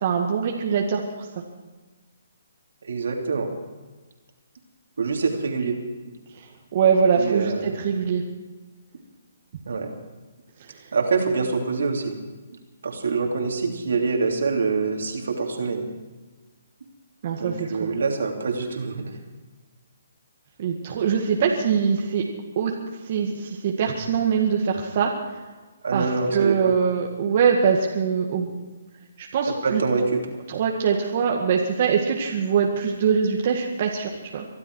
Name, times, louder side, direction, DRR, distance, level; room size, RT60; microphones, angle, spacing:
voice 1, 0.0-1.0 6.4-6.5 6.7-8.2 17.2-17.9 20.6-22.2 22.6-22.7 23.1-25.1 25.9-28.5 29.2-29.8 30.5-34.5, right 6 dB, 45° right, 0 dB, 2.0 m, -23 dB
voice 2, 2.8-3.5 5.0-5.8 7.1-7.7 9.7-9.9 10.9-12.1 12.8-15.8 17.4-19.1 25.8-26.7 29.6-30.2, right 4 dB, 75° right, 2 dB, 3.1 m, -25 dB
23.5 x 12.0 x 4.7 m, 1.3 s
hypercardioid pair, 145°, 0 cm